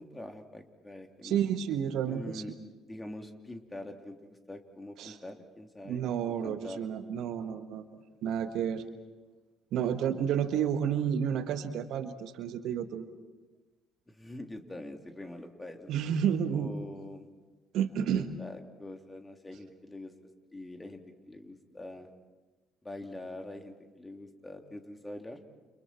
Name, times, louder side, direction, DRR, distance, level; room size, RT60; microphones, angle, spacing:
voice 1, 0.0-1.4 2.1-2.5 2.9-6.1 6.4-6.8 9.8-9.9 14.1-15.9 16.5-17.3 18.1-20.1 20.5-22.1 22.8-25.4, left 1 dB, 15° left, 4 dB, 3.2 m, -44 dB
voice 2, 1.2-2.4 5.0-5.2 5.8-7.8 8.2-8.8 9.7-13.0 15.9-16.7 17.7-18.3, right 8 dB, 65° right, 9 dB, 1.5 m, -30 dB
29.5 x 29.5 x 4.5 m, 1.2 s
hypercardioid pair, 55°, 0 cm